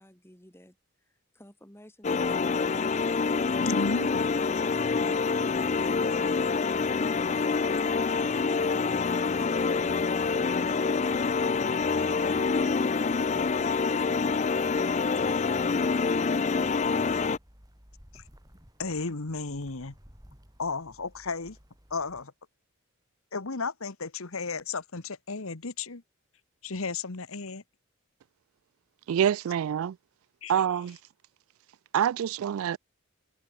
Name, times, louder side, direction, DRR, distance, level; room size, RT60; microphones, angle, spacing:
voice 1, 0.0-2.8, left 1 dB, 10° left, 3.7 m, -56 dB
sound 1, 2.0-17.4, left 4 dB, 30° left, 0.4 m, -26 dB
voice 2, 3.6-4.3 18.1-18.2 18.8-19.9 20.6-21.6 21.9-22.3 23.3-26.0 26.6-27.6 30.4-30.8, left 4 dB, 75° left, 1.4 m, -34 dB
sound 2, 5.2-22.2, equal, 15° right, 7.6 m, -60 dB
voice 3, 29.1-29.9 30.5-31.0 31.9-32.8, right 9 dB, 75° right, 0.3 m, -26 dB
head